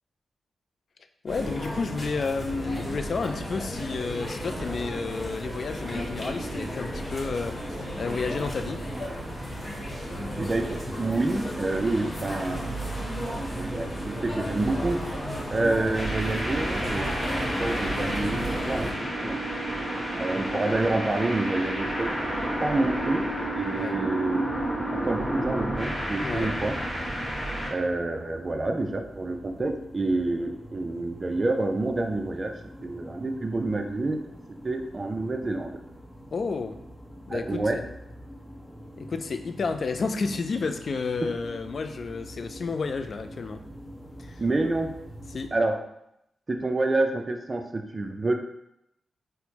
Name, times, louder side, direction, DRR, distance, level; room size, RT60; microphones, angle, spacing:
voice 1, 1.2-8.8 23.8-24.0 26.2-26.5 36.3-36.8 37.3-37.9 39.0-43.6 44.2-44.4 45.3-45.5, left 4 dB, 60° left, 7 dB, 0.3 m, -31 dB
sound 1, 1.3-18.9, equal, 30° left, 1.1 m, -33 dB
voice 2, 10.4-12.8 13.4-15.0 15.5-17.1 17.6-19.4 20.1-22.1 22.6-23.2 23.5-24.5 24.9-26.7 27.7-32.6 32.8-34.2 34.6-35.8 37.3-37.8 41.2-41.3 44.4-44.9 45.5-45.8 46.5-48.3, right 2 dB, 40° right, 4 dB, 0.4 m, -28 dB
sound 2, 15.9-27.7, right 1 dB, ahead, 1.2 m, -30 dB
sound 3, 26.3-45.5, equal, 15° left, 0.8 m, -46 dB
4.2 x 2.1 x 2.8 m, 0.80 s
cardioid pair, 55°, 0 cm